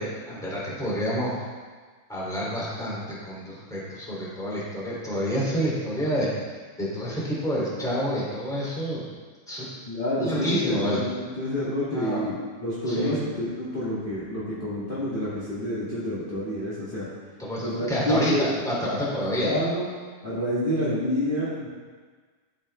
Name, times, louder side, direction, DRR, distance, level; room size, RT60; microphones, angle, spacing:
voice 1, 0.0-1.4 2.1-6.3 6.8-9.0 9.5-9.7 10.2-11.0 11.9-12.3 12.9-13.2 17.4-19.5, equal, ahead, -7 dB, 1.9 m, -28 dB
voice 2, 9.9-17.0 17.6-18.5 18.9-19.0 19.4-19.9 20.2-21.7, equal, 25° left, -10 dB, 1.3 m, -28 dB
13.0 x 6.8 x 3.3 m, 1.5 s
omnidirectional pair, 3.9 m